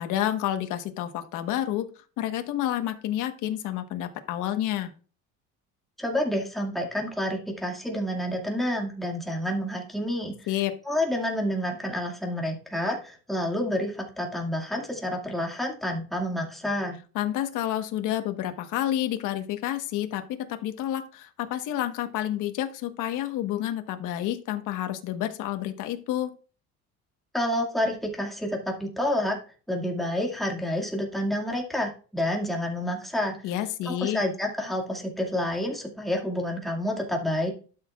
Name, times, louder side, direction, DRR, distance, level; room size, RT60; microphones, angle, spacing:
voice 1, 0.0-1.9 2.2-4.9 10.5-10.7 17.1-26.3 33.4-34.2, left 12 dB, 70° left, 8 dB, 1.3 m, -29 dB
voice 2, 6.0-10.3 10.9-17.0 27.3-29.4 29.7-33.4 33.9-37.5, left 1 dB, ahead, -2 dB, 2.2 m, -29 dB
12.0 x 6.6 x 2.4 m, 0.38 s
cardioid pair, 135°, 32 cm